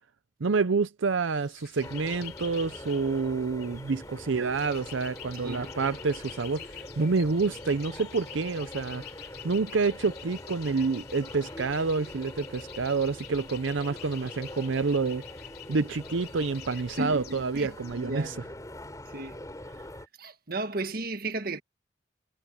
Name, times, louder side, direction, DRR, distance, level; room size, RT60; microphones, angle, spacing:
voice 1, 0.4-6.6 7.0-9.0 9.4-15.2 15.7-18.4, right 4 dB, 85° right, 0.7 m, -28 dB
sound 1, 1.3-18.0, left 10 dB, 55° left, 3.6 m, -47 dB
sound 2, 1.8-20.1, left 1 dB, 20° left, 4.4 m, -44 dB
voice 2, 5.3-5.7 17.0-18.5 19.1-19.4 20.2-21.6, right 2 dB, 50° right, 1.6 m, -35 dB
head